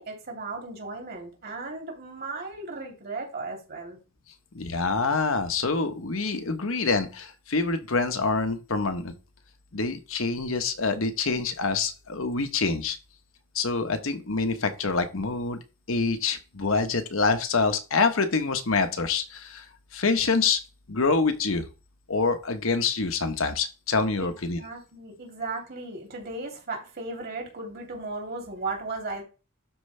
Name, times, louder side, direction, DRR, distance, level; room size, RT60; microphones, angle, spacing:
voice 1, 0.0-4.0 24.2-24.3 24.6-29.2, right 3 dB, 50° right, 2.9 m, -36 dB
voice 2, 4.5-9.1 9.7-13.0 13.5-15.6 15.9-19.6 19.9-20.6 20.9-21.6 22.1-24.6, left 4 dB, 70° left, 1.1 m, -26 dB
12.0 x 4.6 x 3.3 m
head